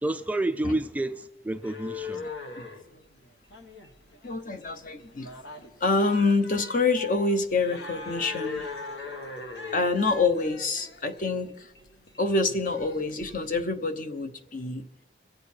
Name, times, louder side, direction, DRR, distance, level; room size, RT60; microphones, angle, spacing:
voice 1, 0.0-2.3, right 2 dB, 10° right, 0.3 m, -29 dB
sound 1, 1.5-13.6, left 3 dB, 70° left, 1.7 m, -41 dB
voice 2, 4.2-5.3 5.8-8.7 9.7-11.7 12.2-14.8, left 3 dB, 45° left, 1.0 m, -26 dB
23.5 x 8.0 x 4.4 m
head